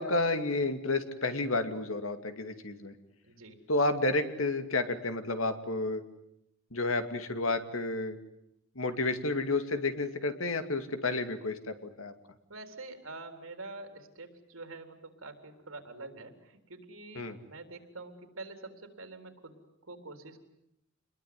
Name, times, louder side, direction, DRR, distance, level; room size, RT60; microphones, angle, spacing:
voice 1, 0.0-2.9 3.7-6.0 6.7-8.2 8.8-12.1 17.2-17.4, left 2 dB, 85° left, 8 dB, 2.5 m, -31 dB
voice 2, 3.2-3.6 12.5-19.5 19.9-20.4, right 3 dB, 85° right, 6 dB, 3.9 m, -46 dB
28.0 x 21.5 x 9.6 m, 0.82 s
head